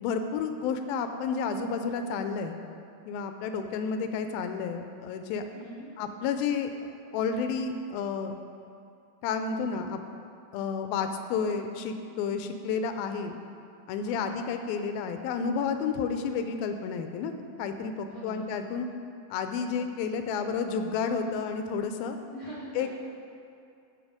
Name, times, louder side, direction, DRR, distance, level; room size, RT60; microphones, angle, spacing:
voice 1, 0.0-2.6 3.1-5.4 6.0-6.7 7.1-8.3 9.2-10.0 10.5-13.4 13.9-17.3 17.6-18.9 19.3-22.2 22.8-22.9, left 5 dB, 85° left, 7 dB, 2.4 m, -31 dB
voice 2, 5.5-5.9 14.0-14.3 18.1-18.4 22.3-22.9, right 2 dB, 45° right, -9 dB, 0.8 m, -42 dB
13.5 x 5.4 x 5.0 m, 2.5 s
omnidirectional pair, 4.3 m